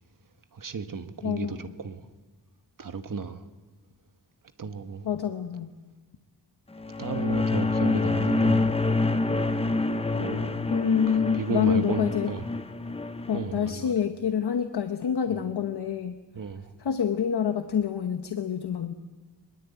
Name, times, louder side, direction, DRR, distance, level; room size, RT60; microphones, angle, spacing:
voice 1, 0.5-2.0 2.8-3.4 4.6-5.1 7.0-8.8 10.2-10.6 11.1-12.5 13.3-13.9 15.3-15.4 16.3-16.6, right 5 dB, 50° right, 1.3 m, -33 dB
voice 2, 1.2-1.7 5.0-5.7 10.7-12.3 13.3-16.2 16.8-18.9, left 8 dB, 65° left, 1.1 m, -27 dB
sound 1, 6.8-13.5, left 3 dB, 15° left, 0.7 m, -27 dB
23.0 x 22.0 x 8.3 m
wide cardioid pair, 175°, 42 cm